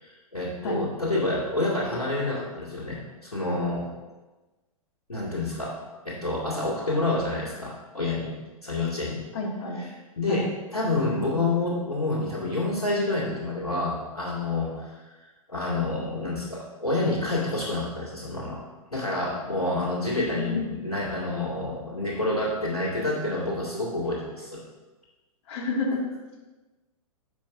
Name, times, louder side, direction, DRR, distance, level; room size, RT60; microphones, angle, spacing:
voice 1, 0.0-3.9 5.1-5.8 6.0-8.3 8.6-9.3 9.8-9.9 10.2-10.4 10.7-15.0 15.5-18.6 18.9-24.6, left 2 dB, 80° left, -8 dB, 2.2 m, -28 dB
voice 2, 9.3-9.8 10.3-10.4 20.3-20.6 25.5-26.0, left 2 dB, 45° left, -2 dB, 2.1 m, -29 dB
10.0 x 6.5 x 2.6 m, 1.2 s
figure-of-eight pair, 110°, 19 cm